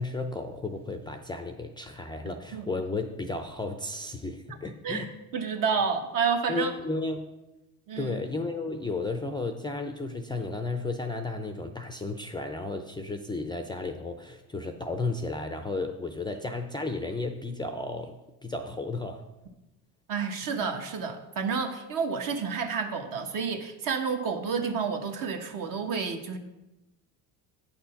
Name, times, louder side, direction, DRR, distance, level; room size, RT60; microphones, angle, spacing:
voice 1, 0.0-5.1 6.5-7.3 8.0-18.2 18.4-19.2, left 3 dB, 10° left, 6 dB, 0.5 m, -33 dB
voice 2, 5.3-6.7 7.9-8.1 20.1-26.4, right 5 dB, 50° right, 5 dB, 1.2 m, -30 dB
8.7 x 4.3 x 5.7 m, 1.0 s
supercardioid pair, 100°, 41 cm